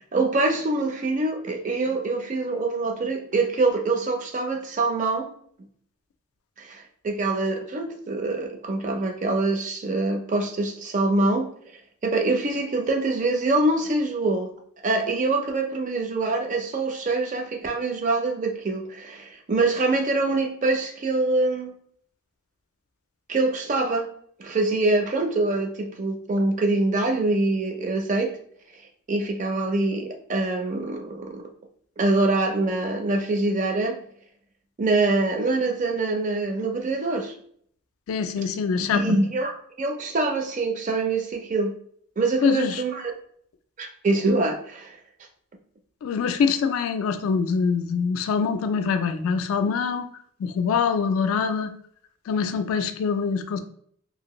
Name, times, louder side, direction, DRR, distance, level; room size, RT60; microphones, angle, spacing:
voice 1, 0.1-5.3 6.6-11.5 12.0-14.5 14.8-21.7 23.3-24.1 24.4-28.3 29.1-31.4 32.0-34.0 34.8-37.3 38.9-41.7 42.2-43.1 43.8-45.0, right 2 dB, 35° right, 3 dB, 0.4 m, -24 dB
voice 2, 38.1-39.2 42.4-42.8 46.0-50.1 50.4-51.7 52.3-53.6, left 5 dB, 75° left, 9 dB, 0.3 m, -24 dB
2.8 x 2.5 x 3.0 m, 0.62 s
head